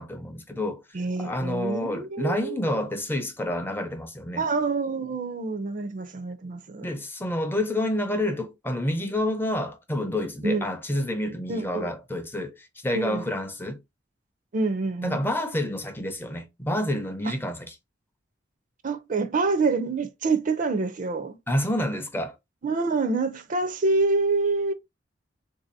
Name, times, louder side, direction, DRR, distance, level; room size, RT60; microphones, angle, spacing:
voice 1, 0.0-0.8 1.2-4.4 6.8-13.8 15.0-17.7 21.5-22.3, left 1 dB, 10° left, 0.5 m, -28 dB
voice 2, 0.9-2.8 4.4-6.9 10.4-10.7 11.5-11.9 12.9-13.3 14.5-15.3 17.3-17.4 18.8-21.4 22.6-24.7, right 3 dB, 45° right, 0.5 m, -26 dB
3.7 x 2.7 x 2.6 m
head